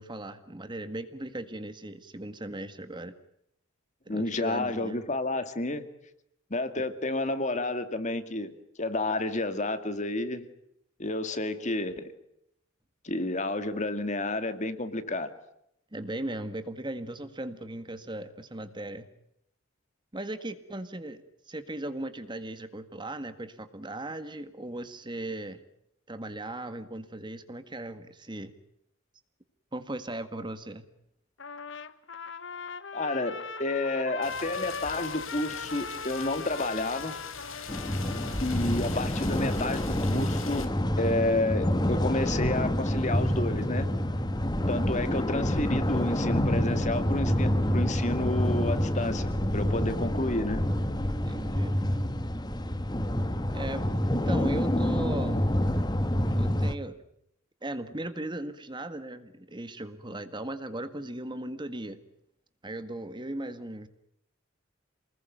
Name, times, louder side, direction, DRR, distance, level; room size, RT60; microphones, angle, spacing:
voice 1, 0.0-3.1 4.1-5.0 15.9-19.1 20.1-25.6 26.1-28.5 29.7-30.8 51.2-51.8 53.5-55.5 56.4-57.0 57.6-62.0 62.6-63.9, right 1 dB, 25° right, 10 dB, 1.7 m, -37 dB
voice 2, 4.1-5.9 6.5-8.5 8.8-10.5 11.0-12.1 13.0-15.3 32.9-37.1 38.4-40.7 41.0-43.9 44.7-50.7, left 2 dB, 35° left, 10 dB, 2.3 m, -30 dB
Trumpet, 31.4-38.5, left 5 dB, 65° left, 1.4 m, -39 dB
Rain, 34.2-40.6, left 6 dB, 90° left, 4.8 m, -42 dB
sound 1, 37.7-56.7, left 1 dB, 20° left, 1.6 m, -27 dB
29.0 x 20.5 x 9.2 m, 0.78 s
head